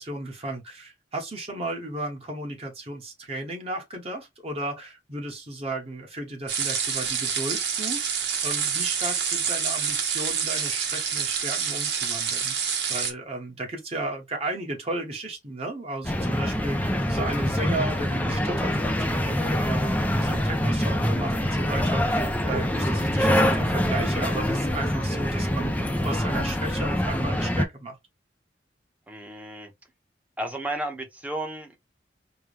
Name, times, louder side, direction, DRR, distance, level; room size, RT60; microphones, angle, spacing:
voice 1, 0.0-28.0, right 2 dB, 35° right, 1.2 m, -34 dB
sound 1, 6.5-13.1, right 7 dB, 70° right, 1.1 m, -27 dB
sound 2, 16.0-27.7, equal, 10° left, 0.5 m, -25 dB
voice 2, 29.1-29.7 30.4-31.8, right 1 dB, 10° right, 0.9 m, -33 dB
4.6 x 2.2 x 3.3 m
head